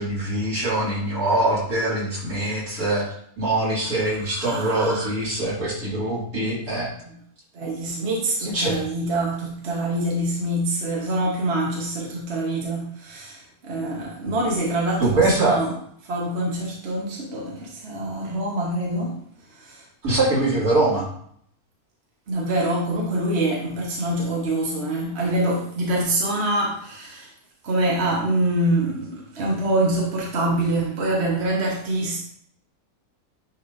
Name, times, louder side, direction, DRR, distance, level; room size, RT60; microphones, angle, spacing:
voice 1, 0.0-3.0 3.4-6.9 8.4-8.8 15.0-15.6 20.0-21.1, right 2 dB, 70° right, -7 dB, 3.0 m, -23 dB
voice 2, 4.3-5.1 7.0-7.1 7.5-15.7 16.0-19.1 19.5-19.8 22.3-27.3 27.6-32.2, right 1 dB, 45° right, -3 dB, 1.3 m, -25 dB
9.8 x 3.6 x 2.6 m, 0.64 s
omnidirectional pair, 1.6 m